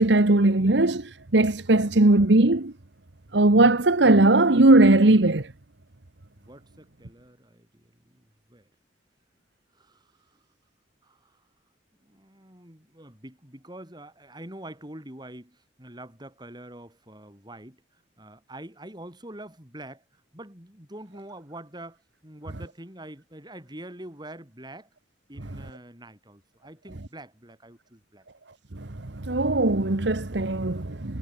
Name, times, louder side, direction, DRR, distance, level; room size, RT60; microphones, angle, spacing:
voice 1, 0.0-2.7 3.3-5.5 28.7-31.2, right 2 dB, 70° right, 1.3 m, -19 dB
voice 2, 6.4-8.7 9.7-10.4 11.0-11.4 12.0-17.8 18.2-24.9 25.3-28.2, right 1 dB, 25° right, 7.2 m, -45 dB
head